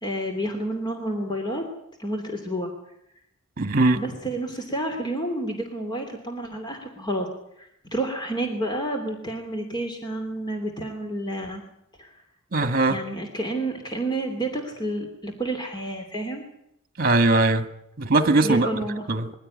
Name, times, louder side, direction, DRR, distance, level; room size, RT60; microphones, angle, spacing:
voice 1, 0.0-1.6 2.0-2.7 3.9-7.3 7.6-11.6 12.0-12.1 12.9-16.4 18.4-19.1, right 1 dB, 20° left, 3.0 m, -30 dB
voice 2, 3.6-4.0 12.5-13.0 17.0-17.7 18.0-18.7 19.1-19.3, right 2 dB, 40° right, 1.9 m, -20 dB
22.5 x 16.0 x 9.8 m
head